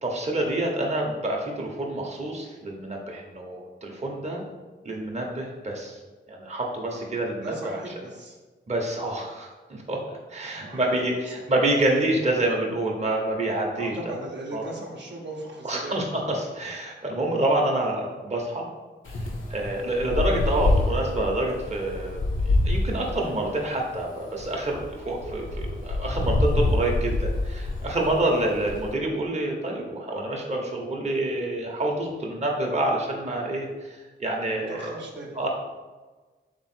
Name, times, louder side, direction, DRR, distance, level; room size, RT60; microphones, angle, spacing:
voice 1, 0.0-4.4 4.8-6.0 6.3-7.8 8.7-14.1 14.5-14.7 15.6-18.7 19.1-19.2 19.5-34.9 35.3-35.5, right 1 dB, 35° right, -1 dB, 0.9 m, -27 dB
voice 2, 7.4-8.4 10.5-11.2 13.7-15.9 28.2-28.4 34.7-35.4, right 1 dB, 65° right, -3 dB, 0.9 m, -38 dB
Wind, 19.0-28.9, left 2 dB, 75° left, 0.8 m, -27 dB
3.6 x 3.0 x 4.4 m, 1.3 s
cardioid pair, 50°, 20 cm